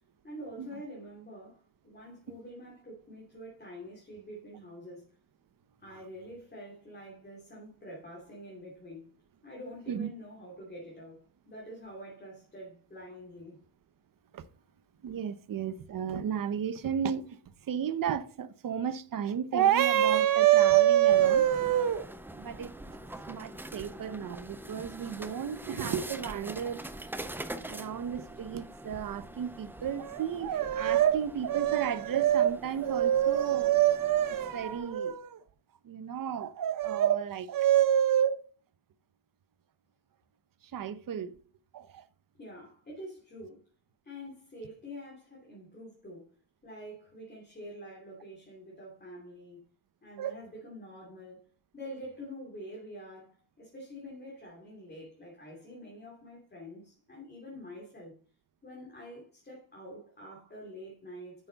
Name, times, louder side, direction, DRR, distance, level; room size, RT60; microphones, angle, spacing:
voice 1, 0.2-5.1 5.8-9.0 9.4-13.6 42.4-43.7 44.0-46.3 46.6-49.6 50.0-51.5 51.7-58.1 58.6-61.5, equal, 20° left, 2.9 m, -46 dB
voice 2, 15.0-17.2 17.7-22.1 22.4-22.7 23.3-26.8 27.7-35.4 35.8-38.4 40.7-41.3 41.7-42.0 50.2-50.4, right 11 dB, 50° right, 0.8 m, -28 dB
sound 1, 21.1-35.0, right 1 dB, 5° right, 0.4 m, -44 dB
9.4 x 6.9 x 4.0 m
wide cardioid pair, 175°, 45 cm